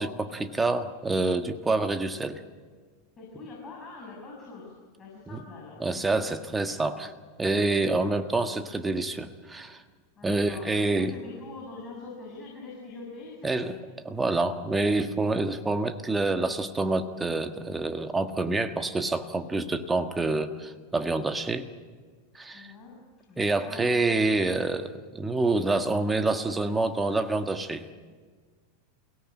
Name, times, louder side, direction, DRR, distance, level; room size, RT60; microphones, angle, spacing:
voice 1, 0.0-2.4 5.3-5.4 5.8-7.1 7.4-9.8 10.2-11.1 13.4-13.7 14.0-21.7 22.3-22.7 23.4-27.9, right 2 dB, 15° right, 8 dB, 1.6 m, -27 dB
voice 2, 3.2-5.8 10.2-13.8 22.5-23.9, left 3 dB, 25° left, -2 dB, 7.0 m, -44 dB
28.0 x 18.0 x 8.8 m, 1.5 s
figure-of-eight pair, 90°, 0 cm